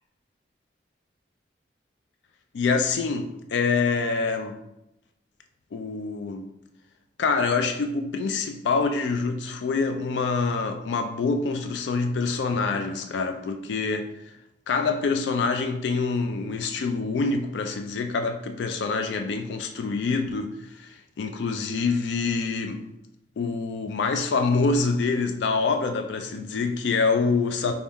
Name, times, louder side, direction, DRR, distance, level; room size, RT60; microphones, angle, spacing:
voice 1, 2.5-4.6 5.7-6.5 7.2-14.1 14.7-22.8 23.4-27.7, left 4 dB, 80° left, 6 dB, 0.3 m, -26 dB
3.5 x 2.3 x 4.0 m, 0.85 s
head